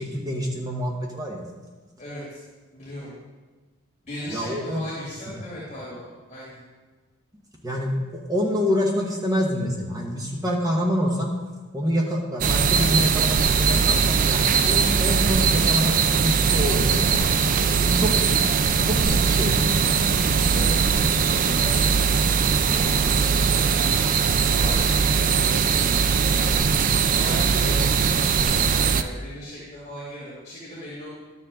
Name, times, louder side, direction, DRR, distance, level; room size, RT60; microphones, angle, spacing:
voice 1, 0.0-1.4 4.3-4.8 5.3-5.4 7.6-11.3 11.7-17.2 17.8-18.3 18.8-19.7 27.6-27.7, equal, 15° right, -1 dB, 1.3 m, -26 dB
voice 2, 2.0-2.4 2.7-3.1 4.0-6.6 20.3-25.9 26.3-26.6 27.0-31.1, left 1 dB, 30° left, -9 dB, 2.7 m, -38 dB
sound 1, 12.4-29.0, right 6 dB, 40° right, 0.4 m, -20 dB
sound 2, 16.7-22.0, left 1 dB, 85° right, 2.9 m, -34 dB
11.5 x 7.0 x 3.8 m, 1.3 s
head